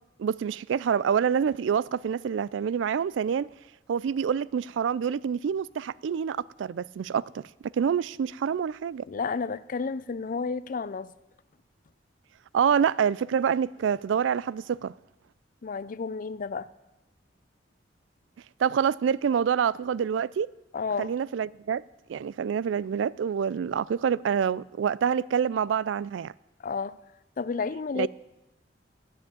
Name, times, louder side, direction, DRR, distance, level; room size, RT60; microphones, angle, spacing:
voice 1, 0.2-3.5 3.9-7.5 7.7-9.0 12.5-14.9 18.6-20.5 21.0-21.8 22.1-26.3 27.9-28.1, right 7 dB, 85° right, 0.3 m, -27 dB
voice 2, 9.1-11.1 15.6-16.7 20.7-21.1 26.6-27.0 27.4-28.1, left 5 dB, 45° left, 0.4 m, -31 dB
11.5 x 7.8 x 8.6 m
head